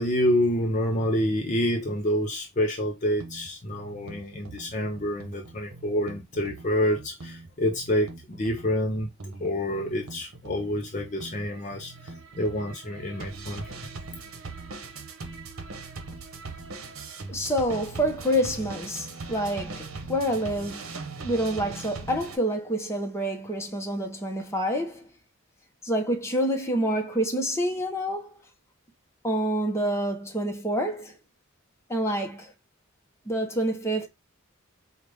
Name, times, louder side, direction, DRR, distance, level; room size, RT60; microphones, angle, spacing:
voice 1, 0.0-9.1 9.4-11.9 12.4-13.6, equal, 35° left, 0.6 m, -27 dB
sound 1, 3.2-22.4, right 3 dB, 85° right, 0.9 m, -41 dB
voice 2, 17.3-21.0 21.2-25.1 25.8-28.4 29.2-31.1 31.9-32.5 33.3-34.1, equal, 15° left, 0.9 m, -27 dB
4.8 x 2.4 x 3.3 m
head